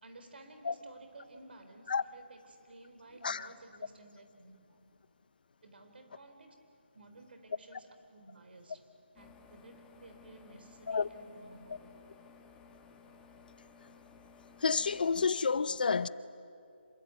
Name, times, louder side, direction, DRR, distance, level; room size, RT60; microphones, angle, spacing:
voice 1, 0.0-4.9 5.6-6.5 6.9-8.9 9.1-12.1, right 2 dB, 60° right, 4.0 m, -55 dB
sound 1, 9.2-15.3, left 5 dB, 10° left, 1.3 m, -57 dB
voice 2, 14.6-16.1, left 5 dB, 50° left, 0.7 m, -29 dB
27.0 x 22.5 x 9.3 m
figure-of-eight pair, 160°, 6 cm